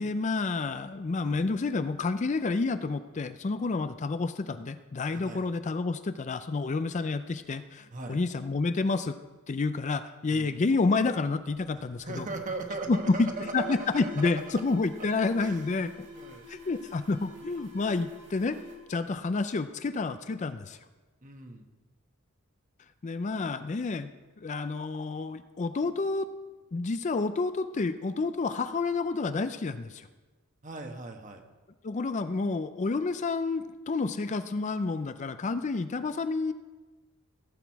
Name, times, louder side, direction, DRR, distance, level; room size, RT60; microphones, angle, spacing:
voice 1, 0.0-9.1 9.5-12.3 12.9-16.1 16.5-18.6 18.9-20.8 23.0-26.3 26.7-30.1 31.8-36.5, left 3 dB, 35° left, 11 dB, 0.4 m, -29 dB
Alarm, 11.3-19.9, left 2 dB, 60° right, 2.3 m, -48 dB
voice 2, 11.7-14.3 15.4-15.7 16.1-16.4 21.2-21.7 30.6-31.4, right 3 dB, 35° right, 5 dB, 1.2 m, -38 dB
16.0 x 8.1 x 4.7 m, 1.2 s
head